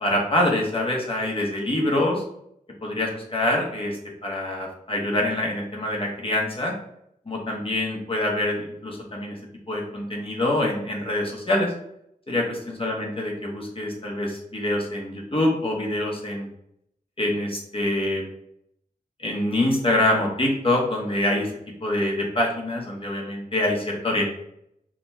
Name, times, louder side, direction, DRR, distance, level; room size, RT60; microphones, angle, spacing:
voice 1, 0.0-2.2 2.8-6.7 7.3-9.4 9.7-11.7 12.3-16.5 17.2-18.3 19.2-21.5 21.8-24.3, left 1 dB, 35° left, -1 dB, 1.0 m, -25 dB
5.0 x 2.8 x 2.2 m, 0.74 s
wide cardioid pair, 100°, 15 cm